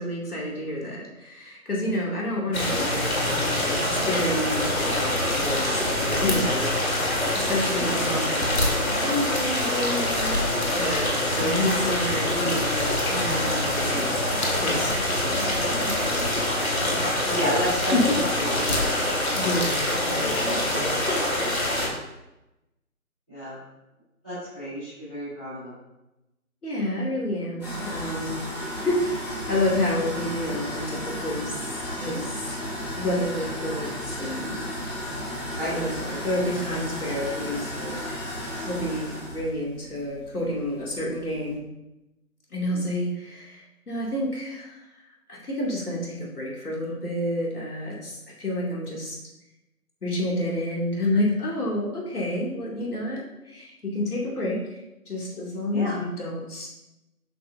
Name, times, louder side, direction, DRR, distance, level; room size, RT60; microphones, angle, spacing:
voice 1, 0.0-10.4 10.7-16.0 16.9-17.4 17.9-18.2 19.4-20.9 26.6-28.4 28.8-32.5 33.0-34.7 35.6-38.2 38.6-41.6 42.5-44.8 45.3-49.2 50.0-54.8 55.1-56.7, left 1 dB, 80° left, -4 dB, 2.6 m, -29 dB
sound 1, 2.5-21.9, left 1 dB, 65° left, 2.2 m, -25 dB
sound 2, 4.6-7.7 8.0-9.5 9.9-11.2 11.5-12.0 12.3-16.9 17.2-17.8 18.1-19.3 19.6-19.7 19.9-20.0, left 1 dB, 45° left, 1.4 m, -33 dB
voice 2, 11.3-12.2 17.3-19.0 23.3-23.6 24.2-25.7 35.5-35.9 42.6-42.9 55.7-56.0, equal, 5° left, -19 dB, 1.8 m, -32 dB
sound 3, 27.6-41.6, equal, 25° left, 2.4 m, -34 dB
7.9 x 6.1 x 2.7 m, 0.94 s
figure-of-eight pair, 175°, 44 cm